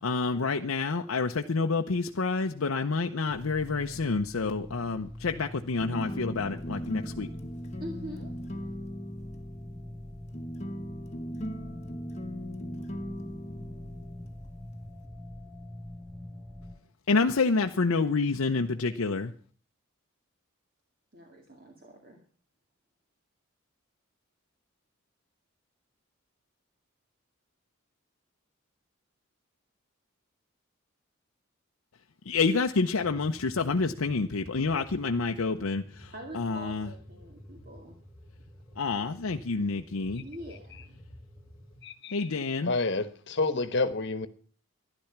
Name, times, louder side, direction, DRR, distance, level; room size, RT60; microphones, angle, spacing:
voice 1, 0.0-7.3 17.1-19.3 32.3-36.9 38.8-40.2 42.1-42.7, left 4 dB, 80° left, 4 dB, 0.7 m, -28 dB
sound 1, 3.3-16.8, left 1 dB, 5° right, 7.0 m, -44 dB
sound 2, 5.8-15.0, equal, 35° left, 1.2 m, -39 dB
voice 2, 7.8-8.3 21.1-22.2 36.1-38.0 40.2-40.9, equal, 45° right, 2 dB, 2.3 m, -44 dB
sound 3, 32.9-41.8, equal, 10° left, 1.3 m, -51 dB
voice 3, 41.8-42.3 42.6-44.3, left 3 dB, 55° left, 11 dB, 1.2 m, -29 dB
12.0 x 11.5 x 5.9 m, 0.43 s
head